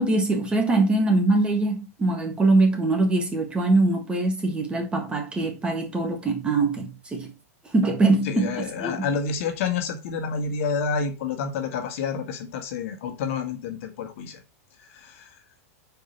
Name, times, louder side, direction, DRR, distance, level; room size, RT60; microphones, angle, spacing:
voice 1, 0.0-7.3 7.7-9.0, right 2 dB, 10° right, 1.5 m, -23 dB
voice 2, 8.2-14.4 14.9-15.3, left 5 dB, 60° left, 1.6 m, -29 dB
5.1 x 4.7 x 5.3 m
supercardioid pair, 145°, 8 cm